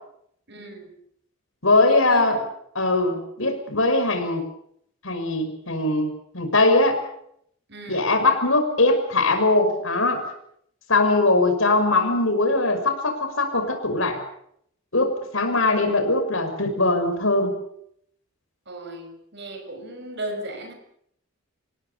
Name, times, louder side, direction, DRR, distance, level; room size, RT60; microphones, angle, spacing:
voice 1, 0.5-0.9 1.7-2.4 7.7-8.1 18.7-20.7, right 1 dB, 50° right, 7 dB, 6.0 m, -36 dB
voice 2, 1.6-2.4 2.7-4.4 5.0-7.0 7.9-10.2 10.9-14.2 14.9-17.5, left 2 dB, 65° left, 6 dB, 5.9 m, -21 dB
27.5 x 17.5 x 8.5 m, 0.71 s
head